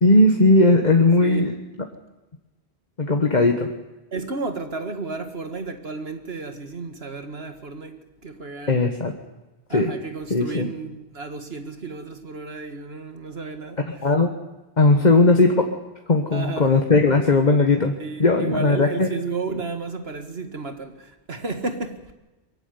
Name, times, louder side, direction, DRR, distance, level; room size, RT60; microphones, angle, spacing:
voice 1, 0.0-1.5 3.0-3.7 8.7-9.1 9.7-9.9 10.3-10.7 14.0-14.3 14.8-15.5 16.1-17.9 18.2-19.1, left 2 dB, 40° left, 1.6 m, -17 dB
voice 2, 4.1-8.9 9.7-14.0 16.3-16.8 18.0-22.1, right 4 dB, 70° right, 2.3 m, -33 dB
23.0 x 15.5 x 9.7 m
omnidirectional pair, 1.1 m